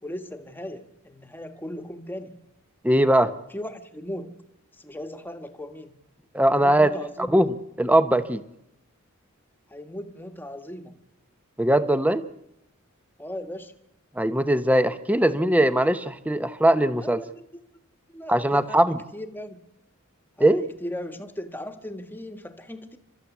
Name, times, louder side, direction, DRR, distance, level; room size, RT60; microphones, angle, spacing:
voice 1, 0.0-2.4 3.5-4.3 4.7-5.9 6.5-7.4 9.7-11.0 13.2-13.7 17.0-17.3 18.1-18.8 19.1-19.6 20.4-23.0, left 1 dB, 10° left, 7 dB, 1.4 m, -37 dB
voice 2, 2.8-3.3 6.3-6.9 7.2-8.4 11.6-12.2 14.2-17.2 18.3-19.0 20.4-20.6, right 1 dB, 5° right, 12 dB, 0.8 m, -20 dB
30.0 x 13.0 x 8.2 m, 0.83 s
head